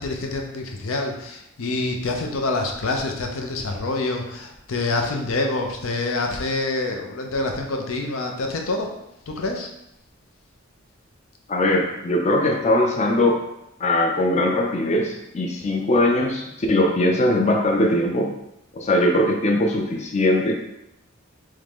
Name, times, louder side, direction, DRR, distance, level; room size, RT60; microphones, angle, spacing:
voice 1, 0.0-8.9 9.3-9.7, left 2 dB, 85° left, 2 dB, 0.6 m, -26 dB
voice 2, 11.5-13.4 13.8-18.4 18.7-20.5, left 1 dB, 35° left, 1 dB, 0.5 m, -20 dB
3.7 x 3.2 x 3.5 m, 0.85 s
head